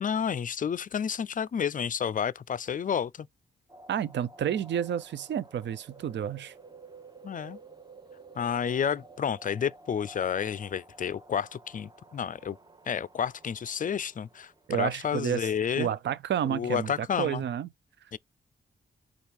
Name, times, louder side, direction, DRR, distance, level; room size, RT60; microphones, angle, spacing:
voice 1, 0.0-3.3 7.2-7.6 8.4-12.6 12.9-15.9 16.5-17.4 18.1-18.2, left 8 dB, 40° left, 0.4 m, -30 dB
sound 1, 3.7-15.0, right 3 dB, 20° right, 0.9 m, -52 dB
voice 2, 3.9-6.5 14.7-15.5 15.8-17.7, right 9 dB, 65° right, 0.5 m, -30 dB
4.4 x 2.4 x 3.4 m
supercardioid pair, 50°, 20 cm